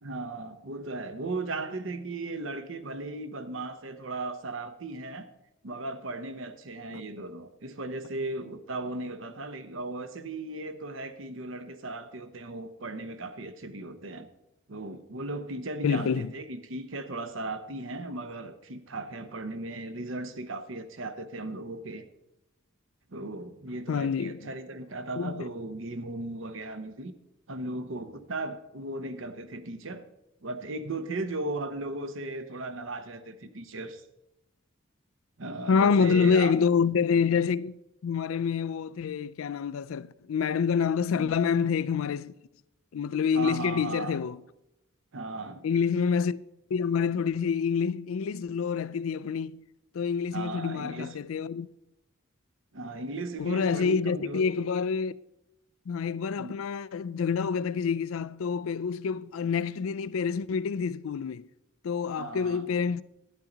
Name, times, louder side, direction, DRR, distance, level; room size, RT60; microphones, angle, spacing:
voice 1, 0.0-5.3 5.6-14.3 14.7-22.1 23.1-27.1 27.5-30.0 30.4-34.0 35.4-36.5 41.2-41.3 43.3-44.2 45.1-45.7 50.3-51.2 52.7-54.4 56.4-56.6 62.2-62.7, right 2 dB, 65° right, 0.9 m, -37 dB
voice 2, 15.8-16.3 23.9-24.4 25.2-25.4 35.7-37.8 38.0-42.3 42.9-44.4 45.6-46.4 46.7-49.6 49.9-51.7 53.4-55.2 55.9-61.5 61.8-63.0, left 6 dB, 85° left, 0.4 m, -27 dB
11.5 x 10.0 x 3.9 m
head